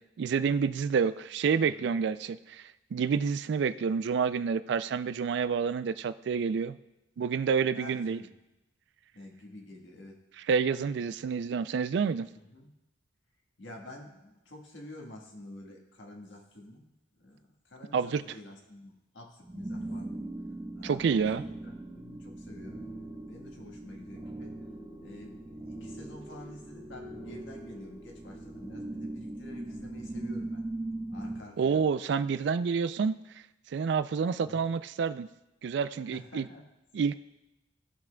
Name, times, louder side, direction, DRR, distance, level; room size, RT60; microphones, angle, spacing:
voice 1, 0.0-6.8 7.2-8.2 10.5-12.3 17.9-18.2 20.8-21.4 31.6-33.2 33.7-35.3 35.6-36.5 36.9-37.1, right 6 dB, 65° right, 15 dB, 0.3 m, -28 dB
voice 2, 1.6-1.9 7.7-8.3 9.1-10.2 11.0-11.2 12.5-12.7 13.6-16.9 17.2-20.2 20.7-21.2 21.5-22.9 23.3-24.6 25.0-30.6 31.1-31.8 34.4-34.7 36.1-36.7, left 1 dB, 75° left, 0 dB, 1.5 m, -49 dB
sound 1, 19.4-31.4, right 1 dB, 20° right, 1.3 m, -40 dB
15.5 x 5.9 x 2.2 m, 0.95 s
head